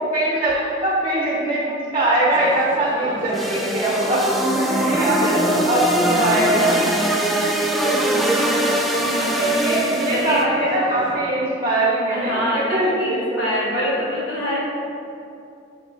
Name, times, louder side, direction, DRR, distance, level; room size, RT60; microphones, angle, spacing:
voice 1, 0.0-5.2 5.6-6.8 9.4-13.9, right 1 dB, 25° right, -5 dB, 0.9 m, -22 dB
sound 1, 2.3-11.2, right 2 dB, 75° right, 0.7 m, -33 dB
sound 2, 3.3-10.4, right 1 dB, ahead, 0.4 m, -22 dB
voice 2, 5.2-6.5 7.4-8.2 8.9-9.5 10.1-10.7 12.1-12.6 13.0-14.6, left 1 dB, 75° left, -6 dB, 1.5 m, -27 dB
5.9 x 5.9 x 3.4 m, 2.6 s
head